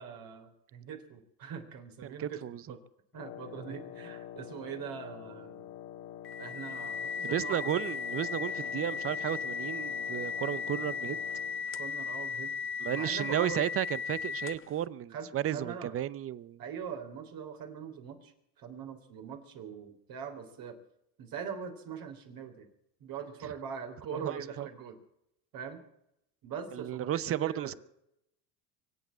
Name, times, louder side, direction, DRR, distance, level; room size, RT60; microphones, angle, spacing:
voice 1, 0.0-2.4 2.7-2.8 3.1-5.7 6.4-7.8 10.6-11.2 11.7-12.5 12.8-13.6 15.1-15.9 16.6-18.3 18.6-20.8 21.2-22.7 23.0-25.0 25.5-25.8 26.4-27.8, right 7 dB, 55° right, 3.5 m, -42 dB
voice 2, 2.0-2.6 7.2-11.2 12.8-16.6 24.2-24.7 26.7-27.8, right 11 dB, 35° right, 0.7 m, -33 dB
Wind instrument woodwind instrument, 3.1-11.7, left 11 dB, 60° left, 1.8 m, -46 dB
sound 1, 6.2-14.8, left 6 dB, 30° left, 0.9 m, -36 dB
24.0 x 8.2 x 7.4 m
supercardioid pair, 100°, 42 cm